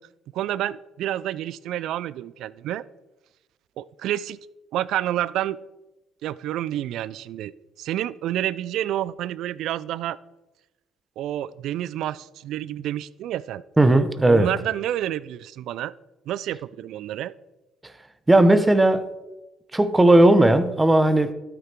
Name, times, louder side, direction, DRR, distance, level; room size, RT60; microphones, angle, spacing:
voice 1, 0.3-2.8 3.8-4.4 4.7-5.6 6.2-10.2 11.2-13.6 14.3-15.9 16.3-17.3, right 12 dB, 70° right, 19 dB, 0.3 m, -29 dB
voice 2, 13.8-14.5 18.3-19.0 19.7-21.3, right 1 dB, 15° right, 11 dB, 0.9 m, -16 dB
12.5 x 6.1 x 4.4 m, 1.0 s
hypercardioid pair, 60°, 0 cm